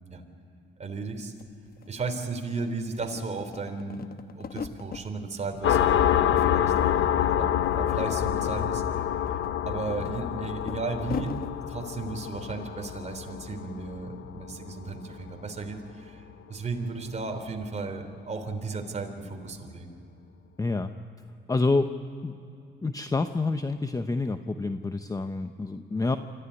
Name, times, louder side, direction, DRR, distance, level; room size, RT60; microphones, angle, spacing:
voice 1, 0.8-1.3 1.9-4.0 4.3-11.4 11.7-19.9, right 3 dB, 35° right, 5 dB, 3.5 m, -35 dB
sound 1, 1.1-1.2 1.4-2.5 2.9-5.1 5.5-6.2 6.5-7.3 7.6-7.8 8.2-11.5, left 7 dB, 50° left, 1.0 m, -40 dB
sound 2, 5.6-14.9, left 10 dB, 80° left, 0.9 m, -27 dB
voice 2, 20.6-20.9 21.5-21.9 22.2-22.4 22.8-26.2, left 3 dB, 15° left, 9 dB, 0.8 m, -27 dB
25.0 x 14.5 x 9.8 m, 2.7 s
cardioid pair, 90°, 20 cm